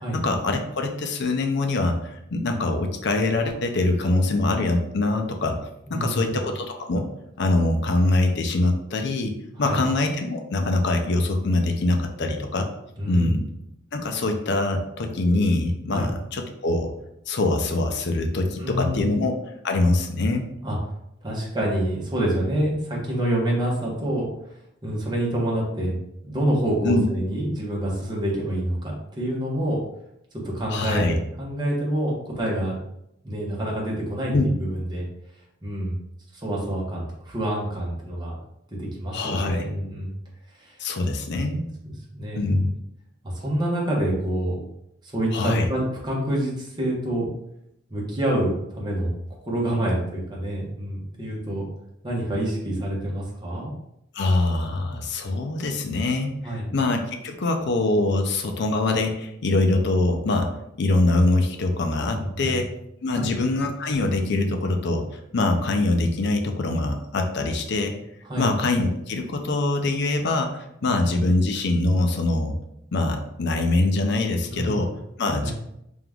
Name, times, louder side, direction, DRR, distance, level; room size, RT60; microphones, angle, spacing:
voice 1, 0.1-5.6 5.9-7.1 7.4-12.7 13.1-13.5 13.9-16.9 17.3-19.4 19.6-20.5 26.8-27.0 30.7-31.1 34.3-34.5 39.1-39.6 40.8-41.7 42.3-42.7 45.3-45.7 54.1-60.5 60.8-62.6 63.0-68.0 68.4-72.5 72.9-74.9 75.2-75.5, left 2 dB, 65° left, 5 dB, 0.5 m, -23 dB
voice 2, 5.9-6.4 9.6-9.8 13.0-13.3 15.9-16.1 18.6-19.2 20.6-20.8 21.2-24.3 24.8-26.0 26.2-29.8 30.5-32.8 33.2-35.1 35.6-36.0 36.3-38.4 38.8-40.1 40.6-40.8 41.4-41.5 41.8-42.6 43.2-44.6 45.0-47.3 47.9-49.2 49.4-51.6 52.0-53.7 56.4-56.7 62.1-62.6 63.1-63.4 65.4-65.6 68.2-68.5 70.9-71.0 74.5-74.9 75.4-75.5, right 1 dB, 25° right, -3 dB, 1.1 m, -27 dB
3.6 x 2.9 x 3.5 m, 0.80 s
head